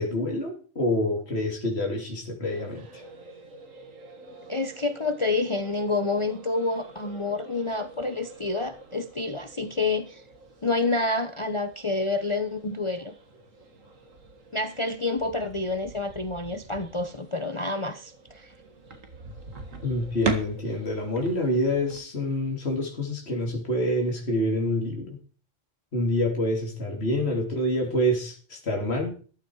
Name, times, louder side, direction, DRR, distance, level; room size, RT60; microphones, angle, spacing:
voice 1, 0.0-3.0 19.8-25.2 25.9-29.1, left 1 dB, 50° left, 1 dB, 3.2 m, -27 dB
sound 1, 2.4-22.0, right 4 dB, 75° right, 2.4 m, -42 dB
voice 2, 4.5-10.2 10.6-13.1 14.5-18.5, left 3 dB, 25° left, 9 dB, 0.9 m, -28 dB
14.0 x 12.5 x 4.7 m, 0.40 s
omnidirectional pair, 1.3 m